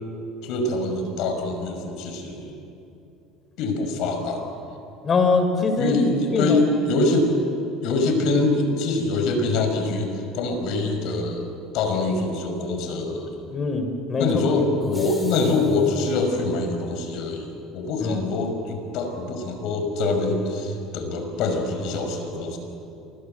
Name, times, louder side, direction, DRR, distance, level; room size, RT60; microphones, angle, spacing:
voice 1, 0.4-2.6 3.6-4.5 5.8-7.3 7.8-11.5 11.7-13.4 14.2-22.6, left 2 dB, 65° left, 5 dB, 5.8 m, -24 dB
voice 2, 5.0-6.0 6.3-6.6 13.5-14.3 14.8-15.0 18.0-18.3, left 4 dB, 35° left, 7 dB, 4.8 m, -22 dB
sound 1, 14.8-16.1, left 2 dB, 15° left, 6.3 m, -44 dB
28.5 x 23.5 x 8.0 m, 2.8 s
hypercardioid pair, 80°, 0 cm